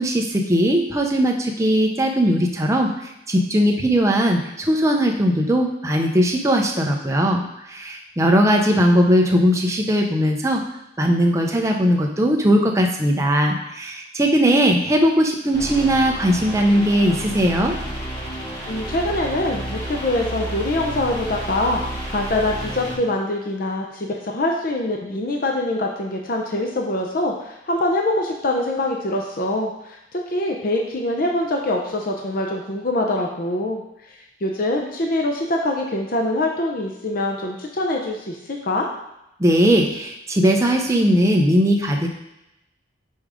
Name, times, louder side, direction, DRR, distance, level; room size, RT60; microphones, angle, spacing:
voice 1, 0.0-7.4 7.7-10.6 11.0-17.8 39.4-42.1, equal, 15° right, 1 dB, 0.7 m, -19 dB
sound 1, 15.5-23.0, right 1 dB, 20° left, 1.5 m, -31 dB
voice 2, 18.7-33.8 34.4-38.9, left 1 dB, 50° left, 1 dB, 0.7 m, -24 dB
5.5 x 4.7 x 5.0 m, 0.88 s
head